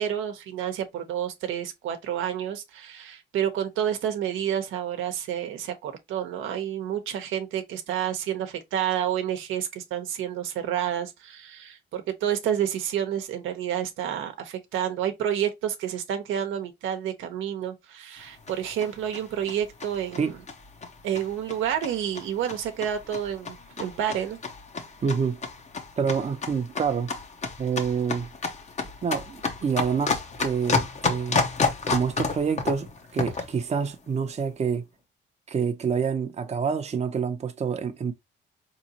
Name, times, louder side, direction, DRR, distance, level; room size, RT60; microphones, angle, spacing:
voice 1, 0.0-20.4 21.0-24.4, right 10 dB, 85° right, 0.8 m, -29 dB
sound 1, 18.2-33.6, left 4 dB, 35° left, 0.8 m, -31 dB
voice 2, 25.0-25.4 26.0-27.1 27.6-28.3 29.0-31.5 31.9-34.8 35.5-38.1, right 6 dB, 35° right, 0.6 m, -27 dB
3.9 x 3.0 x 2.7 m
cardioid pair, 90°, 20 cm